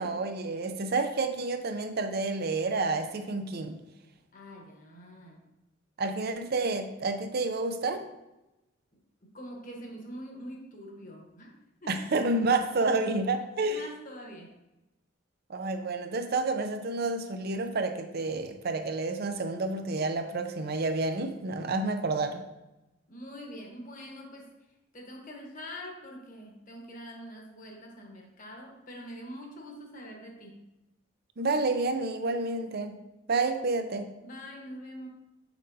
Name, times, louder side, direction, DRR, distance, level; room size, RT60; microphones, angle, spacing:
voice 1, 0.0-3.8 6.0-8.0 11.9-13.8 15.5-22.4 31.4-33.0 33.3-34.1, right 3 dB, 50° right, 7 dB, 0.6 m, -29 dB
voice 2, 4.3-5.4 9.2-12.0 13.6-14.5 23.1-24.5 24.9-30.6 34.2-35.1, equal, 40° left, 0 dB, 1.2 m, -44 dB
6.4 x 6.0 x 2.7 m, 0.95 s
head